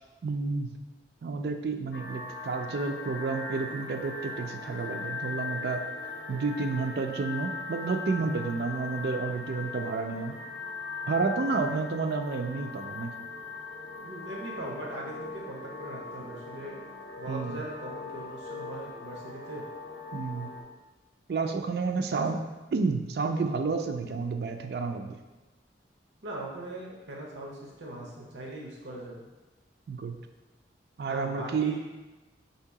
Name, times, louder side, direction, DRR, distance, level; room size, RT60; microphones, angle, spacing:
voice 1, 0.2-0.8 1.2-5.9 6.3-10.4 11.1-13.1 17.3-17.6 20.1-20.6 21.3-22.4 22.7-25.2 29.9-30.1 31.0-31.8, right 4 dB, 60° right, 7 dB, 0.3 m, -30 dB
sound 1, 1.9-20.6, left 4 dB, 75° left, 0.6 m, -40 dB
voice 2, 14.0-16.8 17.2-19.6 22.1-22.2 26.2-29.2 31.1-31.8, right 1 dB, 85° right, -3 dB, 0.7 m, -40 dB
3.4 x 2.8 x 4.6 m, 1.2 s
head